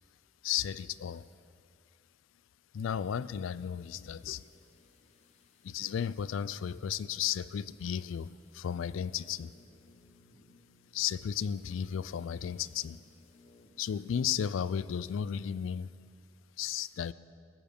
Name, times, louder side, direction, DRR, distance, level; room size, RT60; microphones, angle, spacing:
voice 1, 0.4-1.3 2.7-4.4 5.6-9.5 10.9-13.0 13.8-15.9 16.6-17.1, left 8 dB, 80° left, 18 dB, 0.3 m, -34 dB
sound 1, 3.2-13.8 14.1-14.2, left 2 dB, 35° left, 1.0 m, -65 dB
15.5 x 7.2 x 6.7 m, 2.2 s
head